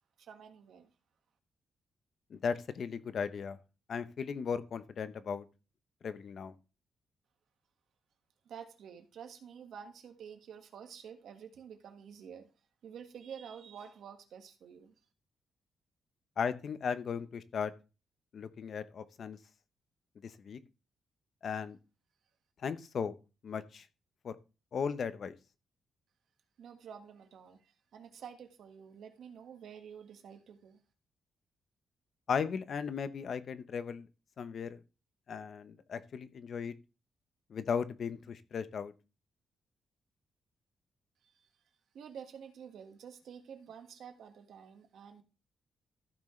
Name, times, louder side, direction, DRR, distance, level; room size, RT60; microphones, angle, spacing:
voice 1, 0.2-0.9 8.4-12.5 12.8-15.0 26.6-30.8 41.2-41.6 41.9-45.2, right 7 dB, 70° right, 1.7 m, -50 dB
voice 2, 2.3-3.6 3.9-5.4 6.0-6.5 16.4-17.7 18.3-19.4 20.5-20.6 21.4-21.8 22.6-23.1 23.4-23.8 24.2-24.3 24.7-25.3 32.3-34.1 34.4-34.8 35.3-36.7 37.5-38.9, left 6 dB, 50° left, 0.8 m, -36 dB
14.5 x 6.2 x 3.2 m
wide cardioid pair, 145°, 0 cm